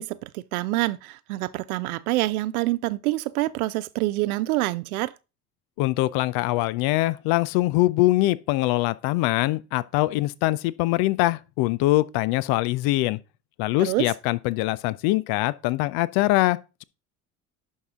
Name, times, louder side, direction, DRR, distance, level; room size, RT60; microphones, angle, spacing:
voice 1, 0.0-5.1 13.8-14.1, right 18 dB, 70° right, 0.6 m, -26 dB
voice 2, 5.8-13.2 13.6-16.8, left 18 dB, 55° left, 0.6 m, -23 dB
11.0 x 4.6 x 3.6 m
hypercardioid pair, 65°, 45 cm